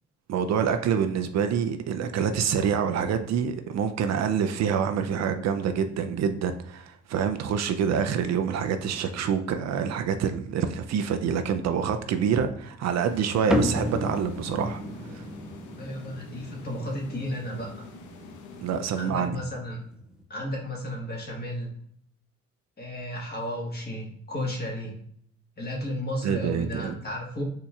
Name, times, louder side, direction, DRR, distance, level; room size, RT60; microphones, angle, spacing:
voice 1, 0.3-14.8 15.1-15.2 18.6-19.4 26.2-26.9, right 7 dB, 60° right, 8 dB, 0.4 m, -26 dB
sound 1, 12.9-19.5, left 5 dB, 80° left, 0.7 m, -47 dB
sound 2, 13.5-20.2, left 1 dB, ahead, 0.4 m, -33 dB
voice 2, 15.7-17.9 18.9-19.8 20.3-21.7 22.8-25.0 25.6-27.4, equal, 35° left, -2 dB, 1.5 m, -33 dB
4.2 x 2.8 x 2.3 m, 0.67 s
cardioid pair, 90°, 30 cm